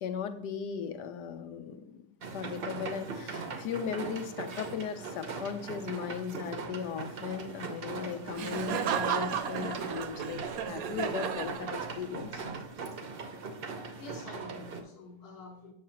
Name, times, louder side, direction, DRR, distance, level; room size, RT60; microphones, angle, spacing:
voice 1, 0.0-2.0 2.3-12.4, left 7 dB, 80° left, 1.2 m, -37 dB
sound 1, 2.2-14.8, right 4 dB, 50° right, 0.7 m, -40 dB
Laughter, 8.3-12.3, right 8 dB, 70° right, 1.0 m, -34 dB
voice 2, 14.0-15.7, left 2 dB, 40° left, 1.0 m, -48 dB
7.4 x 6.6 x 2.8 m
omnidirectional pair, 1.8 m